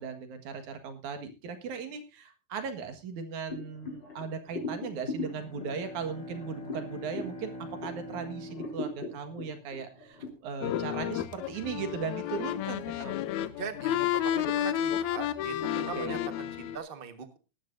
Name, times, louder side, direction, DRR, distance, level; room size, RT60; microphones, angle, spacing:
voice 1, 0.0-7.5 7.8-13.3 16.0-16.2, right 6 dB, 85° right, 7 dB, 3.1 m, -38 dB
sound 1, 3.5-8.1 8.5-10.3, left 2 dB, 35° left, 5.7 m, -39 dB
Bowed string instrument, 5.1-9.9, left 1 dB, 15° left, 1.9 m, -45 dB
sound 2, 10.6-16.8, left 11 dB, 80° left, 2.2 m, -31 dB
voice 2, 13.6-17.4, right 6 dB, 35° right, 8 dB, 0.8 m, -41 dB
18.0 x 12.5 x 2.6 m, 0.29 s
omnidirectional pair, 3.3 m